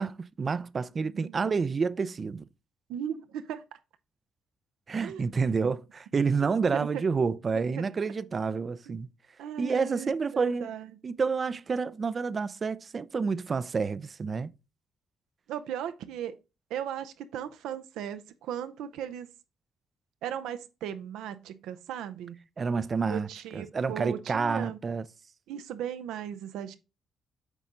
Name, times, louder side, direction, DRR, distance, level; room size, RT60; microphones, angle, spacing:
voice 1, 0.0-2.4 4.9-9.1 9.6-10.7 11.0-14.5 22.6-23.3 23.5-25.1, right 5 dB, 40° right, 0.4 m, -29 dB
voice 2, 1.0-1.5 2.9-3.6 5.0-5.3 6.4-7.3 7.7-7.8 9.4-10.9 15.5-16.3 16.7-19.3 20.2-22.4 23.1-24.8 25.5-26.8, right 9 dB, 90° right, 0.6 m, -37 dB
8.1 x 4.2 x 3.8 m
cardioid pair, 90°, 0 cm